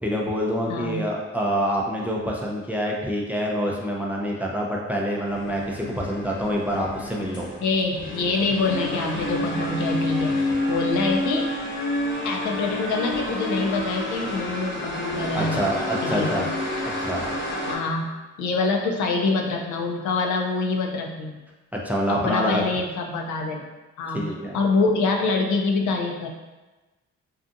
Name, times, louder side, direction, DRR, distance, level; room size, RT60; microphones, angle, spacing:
voice 1, 0.0-7.5 15.3-16.5 17.0-17.2 21.8-22.6 24.1-24.6, equal, 5° right, -2 dB, 0.4 m, -26 dB
voice 2, 0.7-1.0 7.6-11.5 12.2-15.7 16.0-16.5 17.7-18.1 18.4-21.4 22.2-23.6 24.0-26.3, left 3 dB, 75° left, 1 dB, 0.5 m, -25 dB
sound 1, 5.3-17.8, left 1 dB, 40° left, 0.8 m, -29 dB
2.6 x 2.4 x 2.5 m, 1.2 s
cardioid pair, 90°, 30 cm